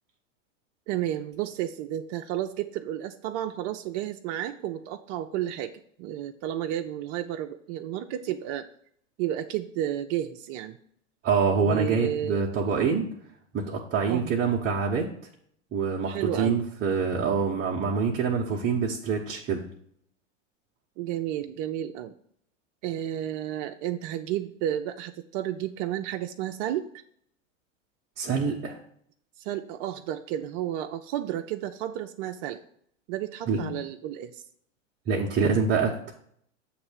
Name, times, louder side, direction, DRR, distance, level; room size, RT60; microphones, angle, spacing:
voice 1, 0.9-5.7 6.0-8.7 9.2-10.8 11.6-12.4 14.1-14.3 16.1-16.6 21.0-22.1 22.8-26.9 29.4-32.6 33.1-34.4, right 12 dB, 45° right, 5 dB, 0.6 m, -32 dB
voice 2, 11.2-13.1 13.5-15.1 15.7-19.6 28.2-28.8 33.5-33.8 35.1-36.1, right 5 dB, 30° right, -2 dB, 1.0 m, -26 dB
7.8 x 3.3 x 6.2 m, 0.66 s
hypercardioid pair, 110°, 38 cm